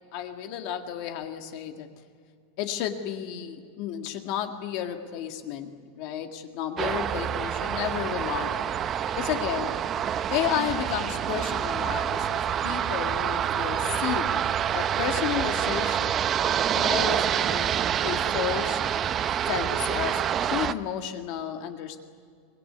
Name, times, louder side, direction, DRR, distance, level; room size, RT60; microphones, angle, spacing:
voice 1, 0.0-1.9 2.6-8.8 9.1-9.7 10.3-14.4 14.7-16.3 16.7-17.7 18.0-18.8 19.5-22.0, left 10 dB, 45° left, 6 dB, 1.8 m, -32 dB
sound 1, 6.8-20.7, right 9 dB, 20° right, 0.6 m, -27 dB
25.0 x 21.5 x 9.7 m, 2.2 s
supercardioid pair, 175°, 0 cm